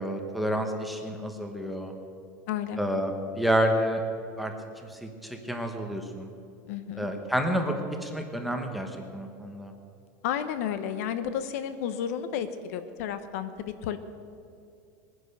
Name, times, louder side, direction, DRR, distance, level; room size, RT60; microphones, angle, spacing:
voice 1, 0.0-1.9 2.8-4.0 4.4-4.5 4.9-6.3 7.0-7.8 8.0-9.7, equal, ahead, 3 dB, 1.0 m, -29 dB
voice 2, 2.5-2.8 6.7-7.1 10.2-14.0, left 9 dB, 55° left, 11 dB, 0.9 m, -32 dB
20.5 x 9.9 x 6.7 m, 2.5 s
supercardioid pair, 180°, 9 cm